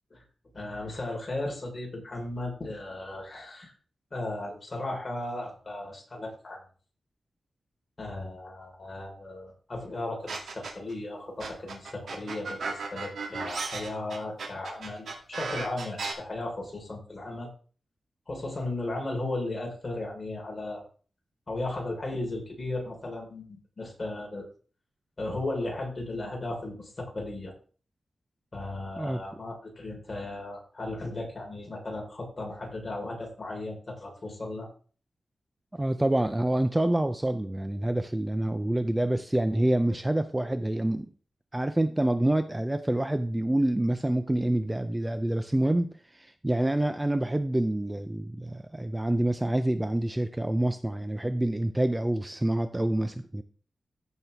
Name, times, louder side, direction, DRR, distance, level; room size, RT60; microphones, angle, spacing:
voice 1, 0.5-3.7 4.1-6.6 8.0-17.5 18.3-20.8 21.5-24.5 25.2-27.5 28.5-34.7, left 2 dB, 30° left, -1 dB, 4.0 m, -36 dB
sound 1, 10.3-10.9 11.4-16.1, right 4 dB, 80° right, 2.3 m, -35 dB
voice 2, 35.7-41.1 41.5-53.4, right 1 dB, 10° right, 9 dB, 0.5 m, -27 dB
14.5 x 6.3 x 3.4 m, 0.41 s
wide cardioid pair, 155°, 0 cm